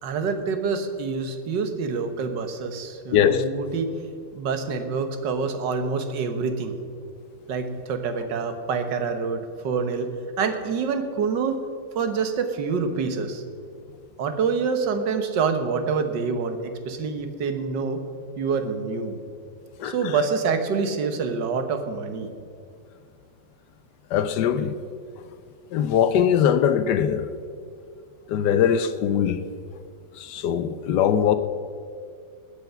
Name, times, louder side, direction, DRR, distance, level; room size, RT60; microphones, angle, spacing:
voice 1, 0.0-3.9 4.3-6.7 7.5-10.1 10.4-11.6 12.0-13.4 14.2-18.0 18.4-19.2 19.8-22.3, right 5 dB, 75° right, 1.7 m, -26 dB
voice 2, 3.1-3.4 19.8-20.2 24.1-24.7 25.7-27.3 28.3-29.4 30.2-31.4, left 9 dB, 70° left, 1.2 m, -21 dB
20.0 x 6.9 x 5.7 m
omnidirectional pair, 2.0 m